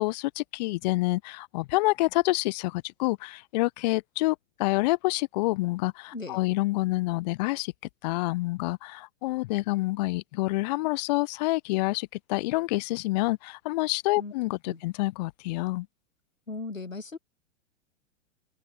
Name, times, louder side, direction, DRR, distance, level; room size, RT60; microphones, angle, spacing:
voice 1, 0.0-7.7 8.0-15.9, left 21 dB, 35° left, 0.6 m, -27 dB
voice 2, 16.5-17.2, left 3 dB, 90° left, 1.1 m, -37 dB
open air
figure-of-eight pair, 95°, 38 cm